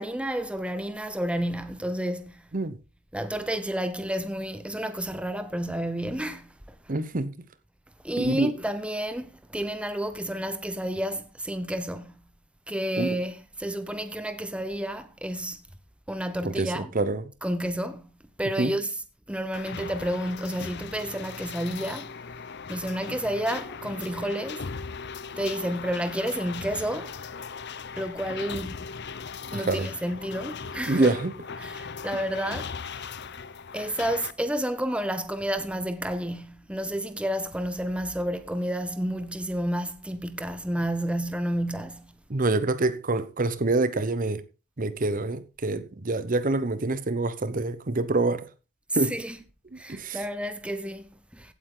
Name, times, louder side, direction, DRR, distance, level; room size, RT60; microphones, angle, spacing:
voice 1, 0.0-2.5 3.1-6.8 8.0-12.3 12.7-15.7 16.1-16.9 17.4-18.9 19.3-22.4 22.7-24.7 25.4-27.2 28.0-28.9 29.5-31.1 31.6-33.1 33.7-42.2 49.0-49.4 49.8-51.5, right 1 dB, 5° right, 0.8 m, -31 dB
voice 2, 6.9-7.3 8.2-8.5 13.0-13.1 16.4-17.3 18.6-18.7 29.5-29.9 30.9-31.3 42.3-44.4 44.8-48.5 48.9-49.1 49.9-50.2, right 2 dB, 40° right, 0.9 m, -26 dB
sound 1, 19.5-34.3, left 5 dB, 50° left, 0.6 m, -38 dB
16.0 x 8.6 x 3.8 m
head